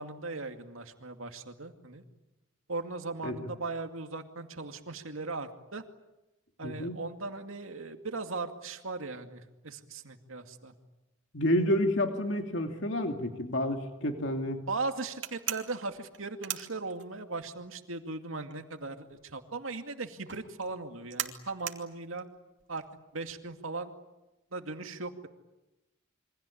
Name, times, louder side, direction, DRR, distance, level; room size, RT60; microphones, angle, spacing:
voice 1, 0.0-2.0 2.7-5.8 6.6-10.7 14.7-22.3 22.7-22.8 23.1-23.9 24.5-25.3, right 3 dB, 80° right, 6 dB, 2.3 m, -38 dB
voice 2, 6.6-7.0 11.3-14.6, left 1 dB, 60° left, 4 dB, 2.7 m, -29 dB
sound 1, 15.2-17.4 17.7-23.5, right 11 dB, 60° right, 2.7 m, -39 dB
28.0 x 24.5 x 8.6 m, 1.0 s
head